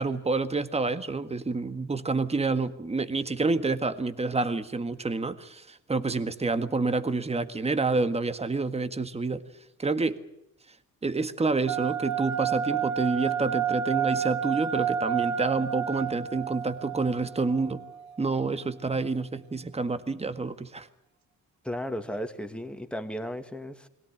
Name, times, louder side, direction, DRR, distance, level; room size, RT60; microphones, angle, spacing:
voice 1, 0.0-9.4 9.8-10.2 11.0-17.8 18.2-20.9, right 3 dB, 20° right, 10 dB, 1.7 m, -28 dB
sound 1, 11.7-18.3, right 8 dB, 65° right, 1.5 m, -30 dB
voice 2, 21.6-23.9, equal, 5° left, 7 dB, 2.3 m, -35 dB
22.0 x 17.5 x 9.9 m, 0.81 s
cardioid pair, 90°, 30 cm